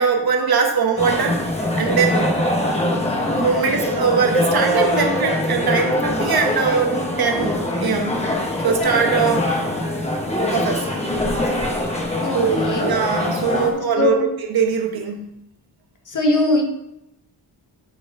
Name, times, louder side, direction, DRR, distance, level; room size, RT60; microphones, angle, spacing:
voice 1, 0.0-1.4 1.8-2.3 3.3-8.3 8.6-9.5 10.5-10.8 12.3-14.2 14.5-15.3, right 6 dB, 55° right, 2 dB, 1.1 m, -21 dB
sound 1, 1.0-13.7, left 1 dB, 15° left, 1.1 m, -23 dB
voice 2, 3.6-4.0 11.9-13.0 13.4-14.3 16.1-16.6, left 2 dB, 45° left, 1 dB, 1.3 m, -23 dB
9.8 x 3.9 x 3.7 m, 0.85 s
wide cardioid pair, 160°, 43 cm